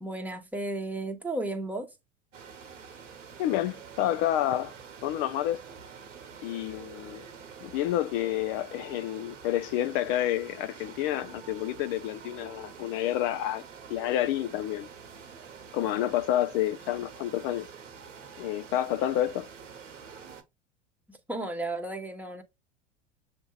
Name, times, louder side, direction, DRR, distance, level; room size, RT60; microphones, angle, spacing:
voice 1, 0.0-1.9 21.1-22.4, right 2 dB, 5° right, 1.0 m, -34 dB
sound 1, 2.3-20.4, right 6 dB, 80° right, 1.0 m, -47 dB
voice 2, 3.4-4.7 5.0-5.6 6.4-7.3 7.6-13.6 13.9-14.9 15.7-17.7 18.4-19.5, left 12 dB, 50° left, 0.5 m, -29 dB
7.2 x 2.6 x 2.2 m
hypercardioid pair, 80°, 37 cm